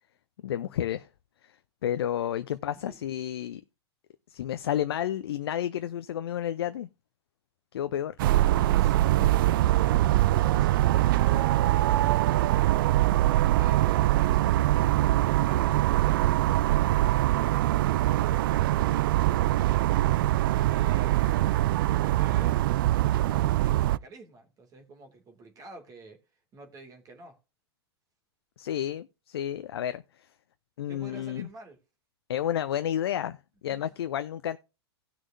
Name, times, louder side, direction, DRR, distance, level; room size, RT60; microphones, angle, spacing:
voice 1, 0.4-1.1 1.8-3.6 4.3-6.9 7.7-8.1 28.6-30.0 30.8-31.5 32.3-33.4 33.6-34.6, left 11 dB, 65° left, 0.6 m, -31 dB
sound 1, 8.2-24.0, right 15 dB, 55° right, 0.4 m, -23 dB
voice 2, 8.7-12.6 12.9-14.6 15.1-16.6 20.7-21.5 21.9-22.7 22.9-26.2 26.5-27.4 30.9-31.8 33.7-33.8, right 3 dB, 25° right, 2.4 m, -49 dB
17.5 x 6.2 x 2.6 m
figure-of-eight pair, 105°, 14 cm